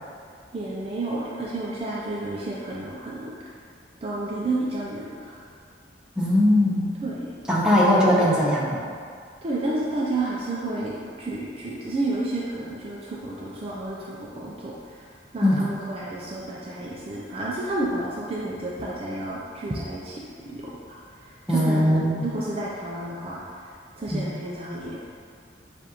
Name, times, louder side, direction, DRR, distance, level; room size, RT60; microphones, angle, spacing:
voice 1, 0.5-3.3 4.0-5.4 7.0-7.3 9.4-15.1 15.3-21.0 21.5-23.4 24.0-25.0, right 2 dB, 35° right, -6 dB, 0.4 m, -31 dB
voice 2, 6.2-6.9 7.5-8.8 15.4-15.6 21.5-22.3 24.1-24.2, left 1 dB, 5° right, -6 dB, 0.7 m, -20 dB
6.9 x 2.5 x 2.9 m, 2.2 s
head